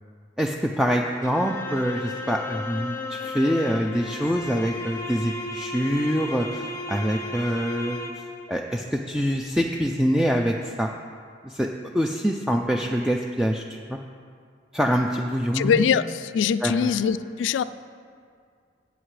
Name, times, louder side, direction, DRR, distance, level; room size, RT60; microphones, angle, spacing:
voice 1, 0.4-10.9 11.4-11.7 11.9-14.0 14.7-15.9 16.6-16.9, equal, 5° right, 1 dB, 0.3 m, -25 dB
sound 1, 1.2-8.5, left 2 dB, 15° left, 0.9 m, -34 dB
voice 2, 15.5-17.6, left 7 dB, 85° left, 14 dB, 0.3 m, -23 dB
13.5 x 8.1 x 3.2 m, 2.1 s
head